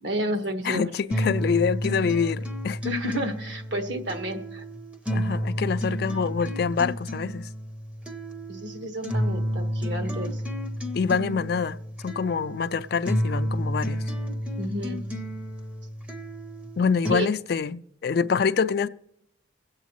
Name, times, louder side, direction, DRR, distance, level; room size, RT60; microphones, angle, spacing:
voice 1, 0.0-0.9 2.8-4.6 8.5-10.4 14.6-15.1 17.1-17.3, right 1 dB, 65° right, 1.4 m, -31 dB
voice 2, 0.6-2.8 5.1-7.5 10.9-11.8 12.0-14.0 16.8-18.9, left 6 dB, 55° left, 0.3 m, -26 dB
sound 1, 1.1-17.1, equal, 5° right, 0.6 m, -31 dB
23.0 x 8.1 x 3.0 m
head